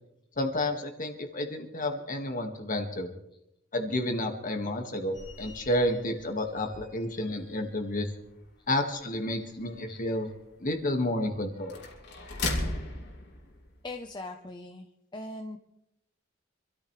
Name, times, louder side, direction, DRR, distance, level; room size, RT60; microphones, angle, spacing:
voice 1, 0.4-3.1 3.7-8.1 8.7-10.3 10.6-11.8, left 1 dB, 45° left, 4 dB, 2.0 m, -30 dB
sound 1, 5.1-14.1, left 2 dB, 65° left, 3.0 m, -40 dB
voice 2, 13.8-14.9 15.1-15.6, left 2 dB, 25° left, 3 dB, 0.9 m, -40 dB
26.0 x 13.5 x 3.3 m, 0.83 s
head